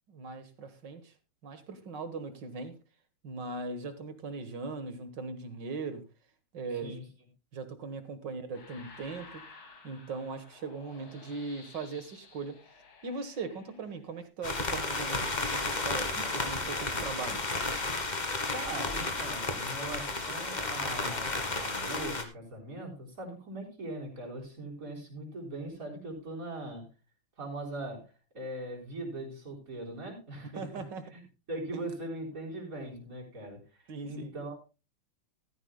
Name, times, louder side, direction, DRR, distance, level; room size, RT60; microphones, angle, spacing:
voice 1, 0.1-1.1 1.4-2.8 3.2-6.0 6.5-7.0 7.5-9.4 9.8-12.6 13.0-17.5 30.6-31.0 31.7-31.8 33.9-34.3, right 4 dB, 60° right, 9 dB, 1.9 m, -39 dB
sound 1, 8.5-14.2, left 4 dB, 75° left, 3.2 m, -54 dB
sound 2, 14.4-22.2, left 3 dB, 25° left, 1.3 m, -33 dB
voice 2, 18.5-26.9 27.4-30.8 31.1-31.2 31.5-34.5, right 1 dB, 40° right, -1 dB, 4.4 m, -40 dB
15.0 x 13.5 x 2.2 m, 0.29 s
omnidirectional pair, 2.3 m